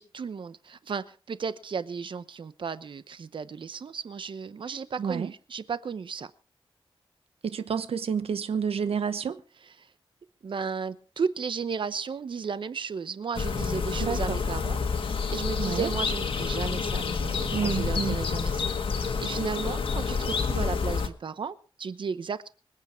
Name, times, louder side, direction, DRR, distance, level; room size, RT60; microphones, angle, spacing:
voice 1, 0.0-6.3 10.4-22.5, right 5 dB, 60° right, 0.9 m, -34 dB
voice 2, 5.0-5.3 7.4-9.4 14.0-14.4 15.6-15.9 17.5-18.2, right 6 dB, 85° right, 1.0 m, -29 dB
sound 1, 13.3-21.1, left 5 dB, 70° left, 1.6 m, -28 dB
25.0 x 8.5 x 4.5 m
wide cardioid pair, 180°, 10 cm